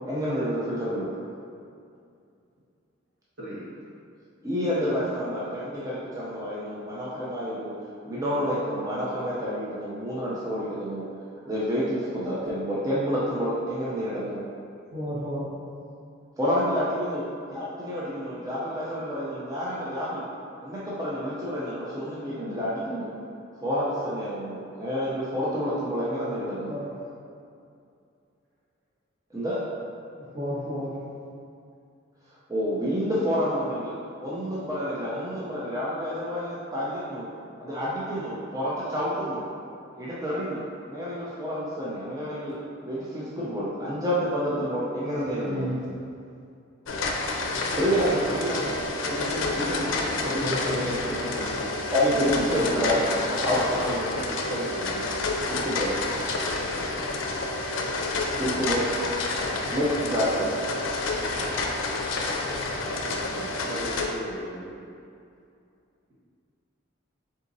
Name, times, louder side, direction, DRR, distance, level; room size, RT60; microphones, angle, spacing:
voice 1, 0.1-1.1 4.4-7.7 8.1-11.1 11.5-14.4 16.4-17.2 17.5-20.2 20.6-23.1 23.6-26.7 29.3-29.7 32.5-37.3 37.6-39.4 40.0-40.6 40.9-42.6 42.8-45.7 47.7-48.8 49.0-55.1 55.5-56.0 58.4-58.9 59.7-60.7, equal, 20° right, -8 dB, 0.5 m, -29 dB
voice 2, 14.9-15.4 26.7-26.9 30.3-30.9 45.4-45.8 50.4-50.8, equal, 35° right, -9 dB, 1.0 m, -31 dB
sound 1, 46.9-64.1, left 2 dB, 85° left, 0.4 m, -29 dB
voice 3, 63.1-64.8, equal, 80° right, -9 dB, 1.4 m, -38 dB
4.0 x 3.6 x 2.6 m, 2.4 s
head